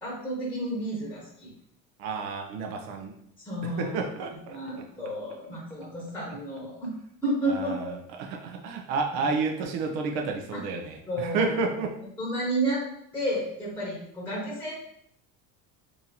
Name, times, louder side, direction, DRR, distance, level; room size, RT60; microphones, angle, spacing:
voice 1, 0.0-1.5 3.4-4.0 4.5-6.9 7.2-8.0 10.5-10.6 11.1-11.9 12.2-12.8 13.1-14.7, right 1 dB, 5° left, -5 dB, 1.0 m, -31 dB
voice 2, 2.0-3.1 3.8-4.6 7.5-7.9 8.2-11.9, right 4 dB, 75° right, 3 dB, 0.7 m, -30 dB
2.9 x 2.8 x 3.9 m, 0.71 s
cardioid pair, 135°, 39 cm